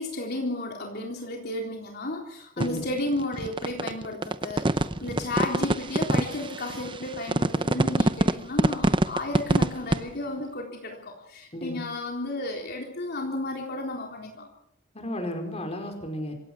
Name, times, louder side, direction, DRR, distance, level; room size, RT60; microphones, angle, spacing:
voice 1, 0.0-14.5, left 2 dB, 50° left, 0 dB, 3.7 m, -33 dB
voice 2, 2.6-2.9 11.5-11.8 14.9-16.3, left 1 dB, 30° left, 4 dB, 4.8 m, -33 dB
sound 1, 2.6-10.0, right 2 dB, 25° right, 0.8 m, -24 dB
26.5 x 17.0 x 6.2 m, 0.75 s
head